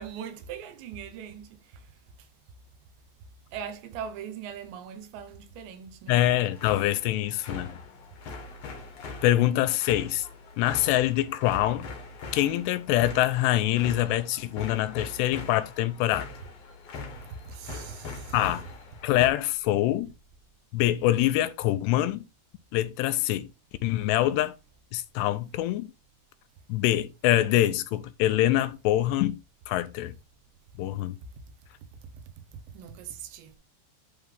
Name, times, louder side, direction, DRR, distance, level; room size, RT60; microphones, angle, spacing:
voice 1, 0.0-1.9 2.2-2.3 3.5-6.2 17.4-18.4 32.1-32.2 32.5-33.6, right 8 dB, 85° right, 3.3 m, -40 dB
voice 2, 6.1-7.7 9.2-10.3 10.6-11.9 12.3-16.3 18.3-18.6 19.0-20.1 20.7-22.2 22.7-23.5 23.8-24.5 24.9-25.9 26.7-29.4 29.7-30.1 30.8-31.2, left 14 dB, 85° left, 2.6 m, -25 dB
sound 1, 6.1-19.3, left 4 dB, 60° left, 1.7 m, -42 dB
10.5 x 3.8 x 3.4 m
omnidirectional pair, 5.0 m